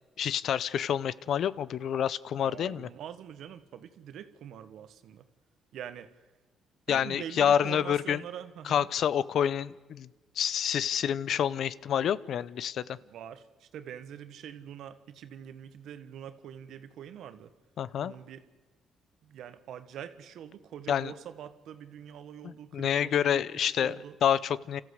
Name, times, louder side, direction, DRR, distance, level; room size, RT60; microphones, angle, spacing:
voice 1, 0.2-2.9 6.9-8.2 8.7-10.1 10.4-13.0 17.8-18.1 20.9-21.1 22.4-24.8, left 9 dB, 65° left, 19 dB, 0.6 m, -28 dB
voice 2, 2.4-5.3 5.7-6.1 6.9-8.9 13.0-17.5 18.0-18.4 19.2-23.4 23.7-24.2, right 9 dB, 75° right, 12 dB, 1.4 m, -44 dB
30.0 x 14.5 x 8.1 m, 1.2 s
cardioid pair, 90°, 0 cm